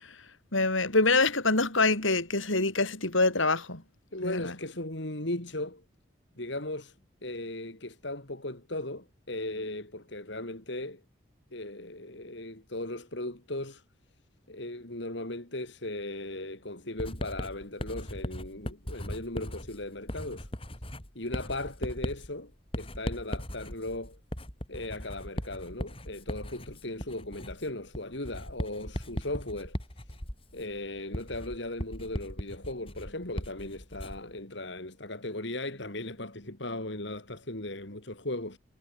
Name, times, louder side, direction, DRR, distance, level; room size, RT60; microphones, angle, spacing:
voice 1, 0.5-3.8 4.2-4.5, left 3 dB, 80° left, 6.6 m, -25 dB
voice 2, 4.1-5.8 6.4-6.9 7.2-11.0 11.5-13.8 14.5-20.5 21.2-24.2 24.7-29.8 30.5-38.6, left 2 dB, 65° left, 3.5 m, -37 dB
Writing, 17.0-34.3, equal, 30° left, 5.0 m, -38 dB
head